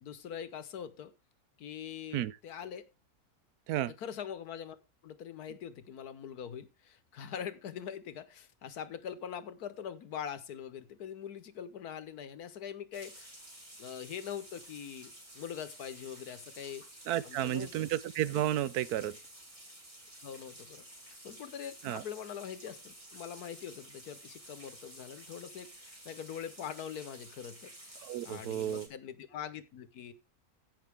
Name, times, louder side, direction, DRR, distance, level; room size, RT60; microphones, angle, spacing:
voice 1, 0.0-1.1 1.6-2.9 4.0-4.8 5.0-13.3 13.8-16.8 17.2-17.9 20.2-20.8 21.2-27.9 28.2-30.1, left 8 dB, 90° left, 1.5 m, -43 dB
sound 1, 12.9-28.9, right 1 dB, 20° right, 3.5 m, -52 dB
voice 2, 17.1-19.2 21.8-22.0 28.0-28.9, right 12 dB, 90° right, 1.2 m, -32 dB
15.5 x 5.8 x 3.5 m
omnidirectional pair, 1.6 m